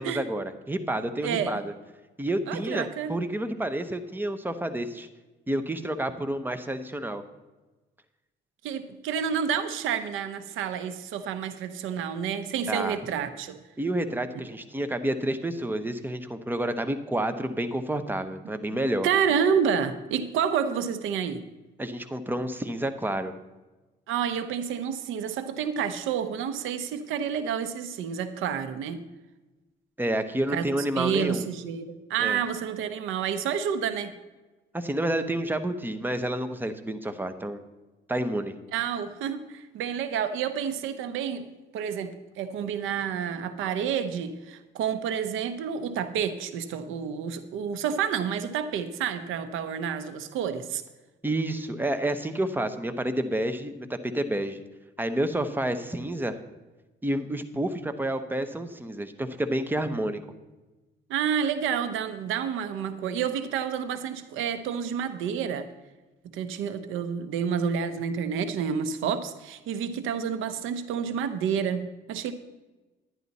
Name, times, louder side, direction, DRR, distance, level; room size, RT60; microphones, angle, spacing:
voice 1, 0.0-1.7 2.2-5.1 5.5-7.2 12.7-13.0 13.8-19.1 21.8-23.3 30.0-31.5 32.2-32.4 34.7-37.6 38.1-38.5 51.2-53.9 54.1-54.6 55.0-56.4 57.0-60.2, right 1 dB, 10° right, 9 dB, 0.9 m, -29 dB
voice 2, 1.2-1.6 2.5-3.2 8.6-13.6 19.0-21.4 24.1-29.0 30.5-30.6 31.0-34.1 38.7-41.5 41.7-50.8 61.1-65.7 66.3-72.3, right 7 dB, 90° right, 11 dB, 0.8 m, -29 dB
11.0 x 10.5 x 4.1 m, 1.2 s
cardioid pair, 90°, 20 cm